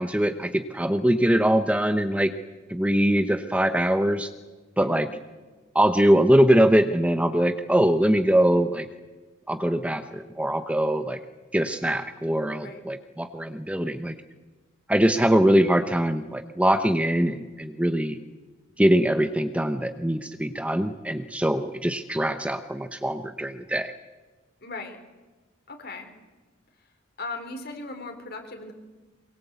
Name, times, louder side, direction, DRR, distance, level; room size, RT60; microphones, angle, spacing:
voice 1, 0.0-2.3 2.7-4.3 4.8-5.1 5.7-8.9 9.5-11.2 11.5-14.1 14.9-18.2 18.8-23.9, right 1 dB, 5° right, 8 dB, 0.9 m, -22 dB
voice 2, 24.6-25.0 25.7-26.1 27.2-28.7, left 3 dB, 50° left, 6 dB, 4.1 m, -37 dB
23.5 x 23.0 x 8.2 m, 1.3 s
head